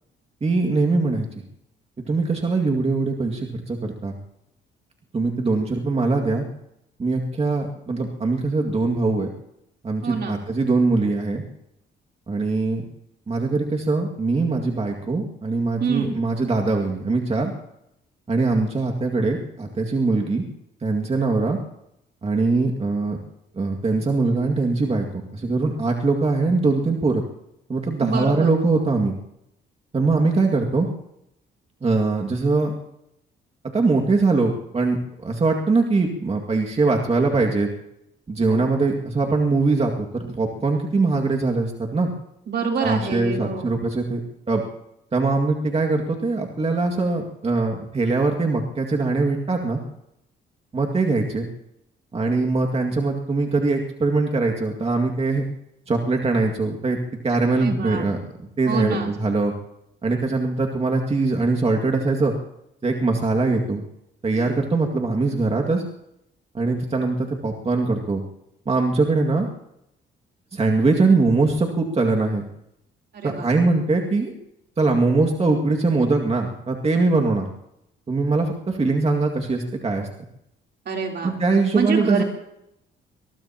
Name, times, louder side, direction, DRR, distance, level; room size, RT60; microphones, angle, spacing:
voice 1, 0.4-1.3 2.1-4.2 5.1-6.4 7.0-9.3 9.8-11.4 12.3-12.8 13.3-17.5 18.3-20.4 20.8-21.6 22.2-23.2 23.6-27.2 27.7-29.1 29.9-30.9 31.8-32.7 33.7-37.7 38.3-42.1 42.8-44.2 44.5-44.6 45.1-49.8 50.7-51.5 52.1-55.4 55.9-57.0 57.2-58.2 58.6-59.5 60.0-62.3 62.8-63.8 64.2-65.8 66.5-68.2 68.7-69.5 70.5-72.4 73.2-74.3 74.8-77.5 78.1-80.1 81.2-82.2, right 3 dB, 30° right, 2 dB, 2.1 m, -22 dB
voice 2, 10.0-10.4 15.8-16.2 28.0-28.5 38.5-38.7 42.5-43.8 57.6-58.1 58.7-59.1 73.1-73.5 80.9-81.3 81.7-82.2, right 5 dB, 55° right, 1 dB, 3.5 m, -26 dB
22.5 x 21.0 x 2.9 m, 0.80 s
cardioid pair, 90°, 20 cm